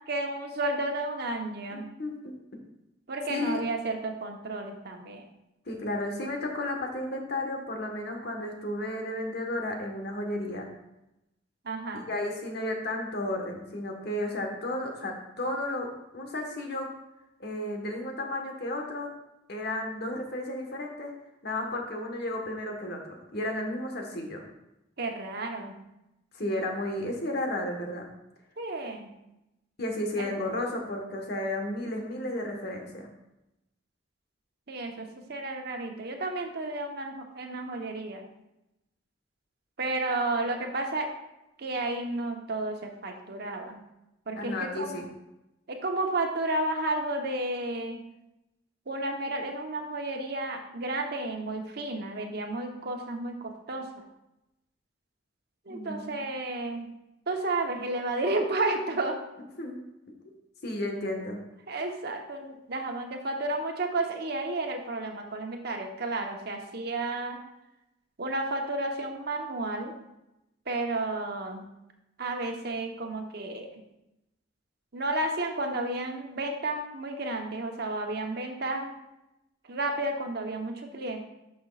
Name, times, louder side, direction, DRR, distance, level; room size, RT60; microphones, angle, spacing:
voice 1, 0.1-1.9 3.1-5.2 11.6-12.1 25.0-25.8 28.6-29.1 30.2-30.3 34.7-38.3 39.8-41.1 41.6-43.8 44.3-45.0 45.7-48.0 48.9-54.0 55.7-56.9 57.3-59.2 61.7-67.4 68.2-69.9 70.7-71.7 72.2-73.8 74.9-78.9 79.7-81.2, right 2 dB, 60° right, 3 dB, 1.0 m, -32 dB
voice 2, 1.7-2.3 3.3-3.6 5.7-10.7 11.9-16.9 17.4-19.1 19.5-21.1 21.4-24.4 26.3-28.1 29.8-33.1 44.4-45.1 55.7-56.3 59.6-59.9 60.2-61.4, left 1 dB, 60° left, 2 dB, 1.4 m, -33 dB
10.0 x 6.2 x 2.4 m, 0.91 s
head